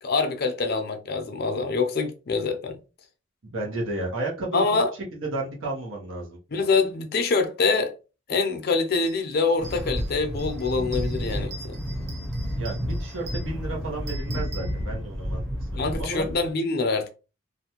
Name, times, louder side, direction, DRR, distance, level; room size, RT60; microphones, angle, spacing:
voice 1, 0.0-2.8 4.5-4.9 6.5-7.9 8.3-11.8 15.8-17.1, left 4 dB, 50° left, 0.5 m, -25 dB
voice 2, 3.5-4.6 5.1-6.4 12.5-16.3, right 2 dB, 80° right, 0.9 m, -32 dB
sound 1, 9.0-9.2 9.5-15.3, right 2 dB, 35° right, 0.8 m, -45 dB
sound 2, 9.6-16.5, equal, ahead, 0.6 m, -31 dB
2.5 x 2.1 x 2.8 m
head